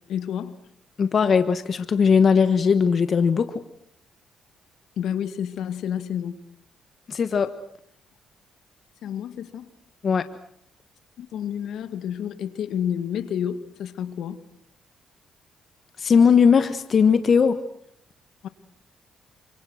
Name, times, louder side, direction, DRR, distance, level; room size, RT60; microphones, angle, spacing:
voice 1, 0.1-0.6 5.0-6.3 9.0-9.7 11.2-14.4 18.4-18.5, left 9 dB, 75° left, 10 dB, 2.1 m, -30 dB
voice 2, 1.0-3.5 7.1-7.5 10.0-10.2 16.0-17.6, left 6 dB, 50° left, 10 dB, 1.3 m, -19 dB
28.5 x 26.0 x 6.5 m, 0.71 s
cardioid pair, 90°, 0 cm